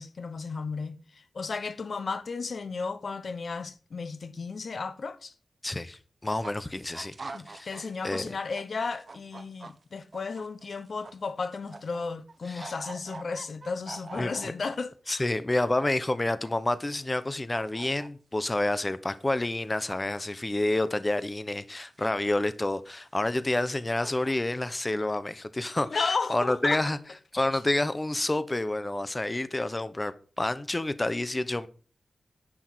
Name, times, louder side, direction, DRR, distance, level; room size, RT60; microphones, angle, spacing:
voice 1, 0.0-5.3 7.3-15.2 25.8-26.8, left 4 dB, 65° left, 1.0 m, -34 dB
voice 2, 5.6-7.1 7.5-7.7 8.0-8.3 12.4-12.7 14.2-14.5 15.1-27.0 27.3-31.7, left 2 dB, 25° left, 0.9 m, -29 dB
sound 1, 6.2-8.0 8.3-12.0 12.3-14.8 15.5-16.1 16.4-17.2 17.5-18.1 19.9-20.2 20.5-21.4 22.0-22.1 23.0-23.1 23.7-23.8 24.0-24.5, right 3 dB, 50° right, 1.2 m, -45 dB
11.0 x 6.3 x 7.8 m
wide cardioid pair, 85°, 0 cm